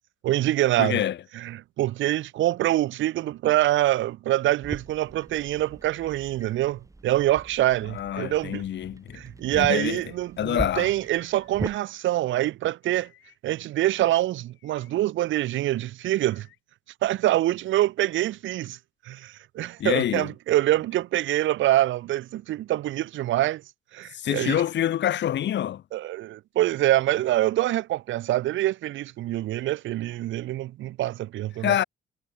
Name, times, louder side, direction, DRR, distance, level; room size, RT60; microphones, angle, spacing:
voice 1, 0.2-1.0 1.3-8.6 9.1-13.1 13.4-16.5 17.0-18.8 19.1-23.6 23.9-24.6 25.9-31.7, right 14 dB, 75° right, 0.7 m, -25 dB
voice 2, 0.8-1.2 7.9-9.2 9.5-10.0 10.4-10.9 19.8-20.3 24.1-25.8 31.6-31.8, left 11 dB, 65° left, 1.3 m, -26 dB
sound 1, 4.6-11.8, right 2 dB, 15° right, 3.4 m, -40 dB
sound 2, 6.0-6.7 7.9-8.5 9.6-10.1 11.0-11.9 12.8-13.4 14.4-14.9 16.0-16.6, left 15 dB, 90° left, 3.7 m, -59 dB
cardioid pair, 90°, 20 cm